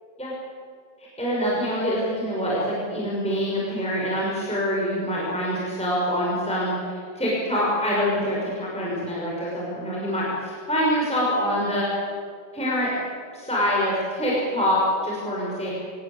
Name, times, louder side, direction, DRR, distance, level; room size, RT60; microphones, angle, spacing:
voice 1, 1.2-12.0 12.5-12.9 13.3-15.7, equal, ahead, -6 dB, 5.6 m, -25 dB
27.5 x 19.0 x 8.3 m, 2.2 s
omnidirectional pair, 4.4 m